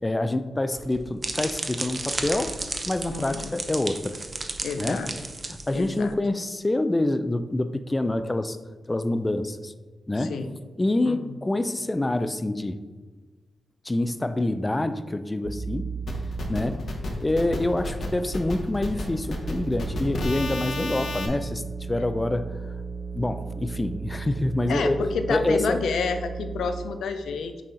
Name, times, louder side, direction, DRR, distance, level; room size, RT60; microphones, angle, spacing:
voice 1, 0.0-2.6 2.9-4.2 4.8-5.0 5.5-8.6 8.9-9.7 10.1-10.4 10.8-12.8 13.8-15.9 16.5-16.8 17.2-21.6 21.9-22.6 23.1-25.0 25.3-25.8, left 2 dB, 20° left, 10 dB, 0.4 m, -26 dB
sound 1, 0.7-6.1, right 2 dB, 35° right, 0.6 m, -33 dB
voice 2, 3.1-3.5 4.6-5.1 5.7-6.1 10.2-10.6 11.0-11.3 16.5-16.7 24.7-27.6, left 5 dB, 85° left, 8 dB, 0.4 m, -30 dB
sound 2, 15.4-16.7 17.0-26.8, right 5 dB, 70° right, 0.9 m, -36 dB
sound 3, 16.1-21.3, left 1 dB, 65° left, 1.0 m, -32 dB
6.1 x 4.1 x 3.8 m, 1.3 s
cardioid pair, 80°, 0 cm